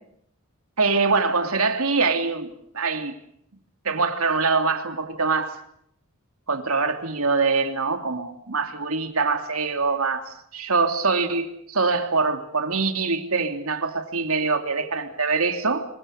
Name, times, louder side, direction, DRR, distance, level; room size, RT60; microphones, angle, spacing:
voice 1, 0.8-2.5 2.7-3.1 3.8-5.6 6.5-15.9, right 4 dB, 80° right, 2.9 m, -24 dB
26.0 x 24.0 x 6.6 m
head